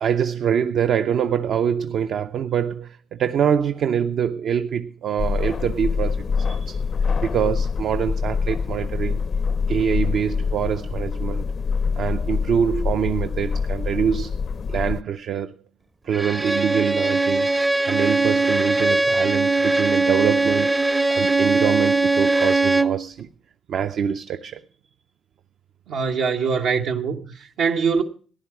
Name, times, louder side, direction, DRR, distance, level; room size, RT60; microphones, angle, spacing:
voice 1, 0.0-6.8 7.2-9.2 9.7-11.5 12.0-14.3 14.7-15.5 16.0-17.5 17.9-20.8 21.1-23.3 23.7-24.6, right 8 dB, 70° right, 0.5 m, -24 dB
sound 1, 5.2-15.0, left 5 dB, 50° left, 0.5 m, -25 dB
Bowed string instrument, 16.1-23.1, right 3 dB, 15° right, 0.5 m, -20 dB
voice 2, 25.9-28.0, right 5 dB, 85° right, 0.9 m, -23 dB
15.0 x 10.5 x 4.6 m
cardioid pair, 90°, 0 cm